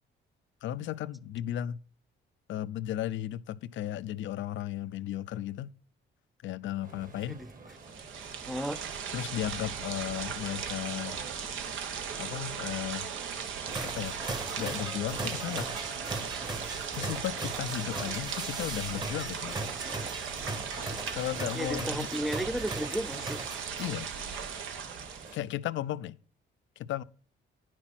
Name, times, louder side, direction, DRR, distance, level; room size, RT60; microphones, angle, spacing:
voice 1, 0.6-1.8 2.5-5.7 6.4-7.4 9.1-11.2 12.2-13.1 13.8-14.2 14.6-15.7 16.9-19.6 21.1-22.1 23.8-24.1 25.3-26.2 26.8-27.0, left 12 dB, 70° left, 0.5 m, -35 dB
sound 1, 6.8-25.4, right 4 dB, 45° right, 1.8 m, -50 dB
sound 2, 7.8-25.4, right 7 dB, 80° right, 1.2 m, -37 dB
voice 2, 8.5-8.8 21.5-23.4, right 1 dB, ahead, 0.4 m, -34 dB
sound 3, 13.7-24.1, right 2 dB, 20° right, 1.1 m, -39 dB
9.8 x 6.0 x 6.0 m
cardioid pair, 90°, 20 cm